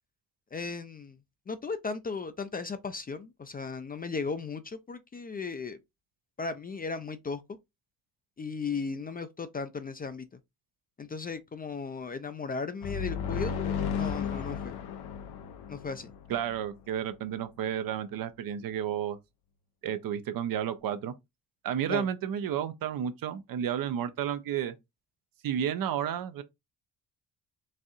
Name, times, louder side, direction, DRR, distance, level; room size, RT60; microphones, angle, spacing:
voice 1, 0.5-1.2 1.5-5.8 6.4-7.4 8.4-10.3 11.0-14.8 15.7-16.1 21.9-22.1, left 4 dB, 25° left, 0.4 m, -36 dB
sound 1, 12.8-16.6, left 6 dB, 70° left, 0.7 m, -34 dB
voice 2, 16.3-19.2 19.8-21.1 21.6-24.7 25.4-26.4, right 9 dB, 55° right, 0.6 m, -31 dB
4.2 x 2.6 x 2.4 m
hypercardioid pair, 50°, 41 cm